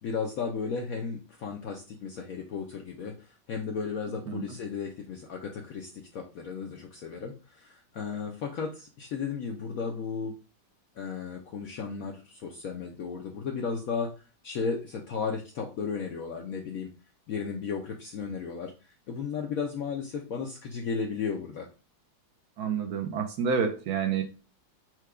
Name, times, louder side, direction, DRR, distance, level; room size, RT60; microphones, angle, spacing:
voice 1, 0.0-10.3 10.9-16.9 17.3-21.7, left 5 dB, 70° left, 2 dB, 0.8 m, -34 dB
voice 2, 22.6-24.2, right 6 dB, 70° right, 4 dB, 1.1 m, -28 dB
4.5 x 2.2 x 4.7 m, 0.33 s
omnidirectional pair, 2.0 m